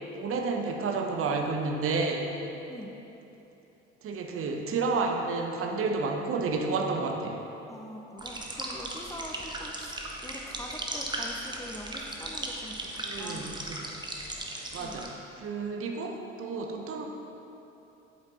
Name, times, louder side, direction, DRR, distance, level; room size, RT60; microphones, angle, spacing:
voice 1, 0.1-2.3 4.0-7.4 13.1-13.6 14.7-15.1 15.4-17.1, right 4 dB, 40° right, 2 dB, 0.9 m, -30 dB
voice 2, 7.7-13.6 14.8-15.1, left 1 dB, 10° left, 0 dB, 0.6 m, -43 dB
sound 1, 8.2-15.1, right 1 dB, 15° right, 1.1 m, -37 dB
8.5 x 8.1 x 3.1 m, 3.0 s
figure-of-eight pair, 55°, 34 cm